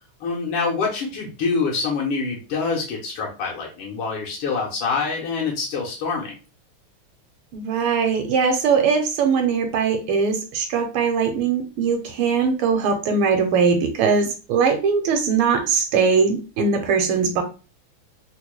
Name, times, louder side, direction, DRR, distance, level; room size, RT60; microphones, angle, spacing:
voice 1, 0.2-6.3, left 4 dB, 85° left, -2 dB, 1.7 m, -25 dB
voice 2, 7.5-17.4, right 5 dB, 80° right, 5 dB, 1.5 m, -21 dB
3.9 x 2.2 x 3.0 m, 0.33 s
omnidirectional pair, 2.4 m